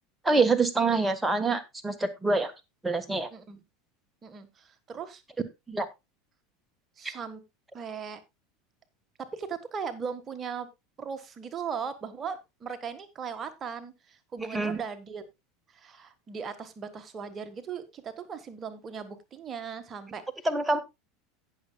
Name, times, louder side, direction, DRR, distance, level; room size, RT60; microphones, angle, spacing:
voice 1, 0.2-2.5 2.8-3.3 5.7-5.9 7.0-7.2 14.5-14.8 20.4-20.8, right 3 dB, 10° right, 8 dB, 1.3 m, -26 dB
voice 2, 4.2-5.2 7.0-7.4 7.7-8.2 9.2-10.7 11.0-15.2 15.7-20.2, right 6 dB, 30° right, 9 dB, 1.4 m, -38 dB
17.5 x 6.6 x 2.2 m, 0.22 s
figure-of-eight pair, 75°, 0 cm